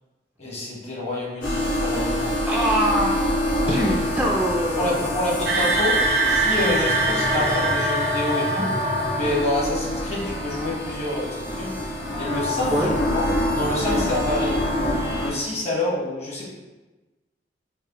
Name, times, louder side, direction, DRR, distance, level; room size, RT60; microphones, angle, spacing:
voice 1, 0.4-2.3 3.6-4.0 4.7-8.7 9.1-11.7 12.2-13.3 13.5-14.6 15.2-16.5, left 1 dB, 40° left, -4 dB, 1.1 m, -27 dB
sound 1, 1.4-15.3, left 1 dB, 70° left, 1.4 m, -26 dB
voice 2, 2.5-3.1 3.7-5.1 12.7-12.9, equal, 10° right, -2 dB, 0.3 m, -23 dB
sound 2, 5.5-9.3, right 3 dB, 85° right, 0.8 m, -24 dB
4.8 x 2.9 x 2.9 m, 1.2 s
head